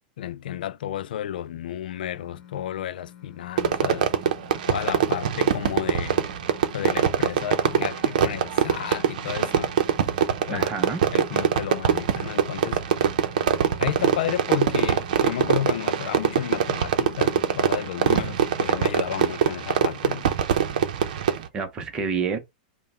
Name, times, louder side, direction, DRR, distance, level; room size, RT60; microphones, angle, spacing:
voice 1, 0.2-4.1 4.7-6.3 6.7-9.7 10.5-10.7 11.1-12.8 13.8-20.3, left 11 dB, 75° left, 0.3 m, -32 dB
sound 1, 1.9-18.8, left 11 dB, 45° left, 1.1 m, -48 dB
Fireworks, 3.6-21.5, right 8 dB, 60° right, 0.7 m, -23 dB
voice 2, 10.5-11.0 21.1-22.4, right 5 dB, 15° right, 0.8 m, -29 dB
5.5 x 2.2 x 4.2 m
supercardioid pair, 170°, 5 cm